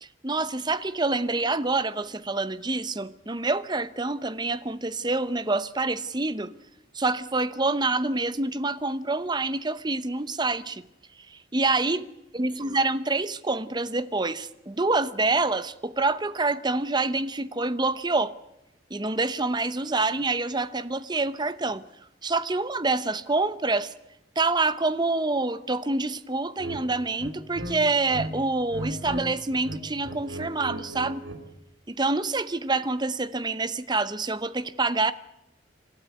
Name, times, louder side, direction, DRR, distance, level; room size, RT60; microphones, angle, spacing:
voice 1, 0.0-6.5 6.9-10.8 11.3-12.0 12.3-18.3 18.9-21.8 22.2-23.9 24.4-31.2 31.9-35.1, right 3 dB, 25° right, 0.8 m, -27 dB
sound 1, 26.6-26.8 27.2-28.3 28.6-29.2 29.5-31.4, right 1 dB, 80° right, 3.2 m, -36 dB
26.5 x 13.0 x 9.1 m
head